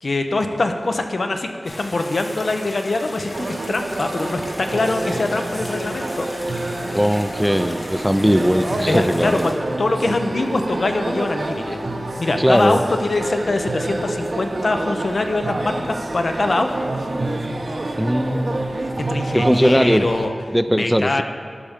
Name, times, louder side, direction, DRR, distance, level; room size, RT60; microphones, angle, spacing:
voice 1, 0.0-6.3 8.9-9.5 9.8-11.8 12.2-16.7 19.0-20.3 20.8-21.2, left 2 dB, 75° left, 5 dB, 0.6 m, -23 dB
sound 1, 1.6-9.5, left 1 dB, 55° left, 1.4 m, -36 dB
sound 2, 3.3-20.3, right 2 dB, 65° right, 0.6 m, -27 dB
voice 2, 6.9-9.5 12.4-12.9 18.0-18.6 19.3-20.1 20.5-21.2, equal, 5° right, 12 dB, 0.3 m, -19 dB
12.0 x 5.3 x 3.6 m, 2.2 s
wide cardioid pair, 50°, 0 cm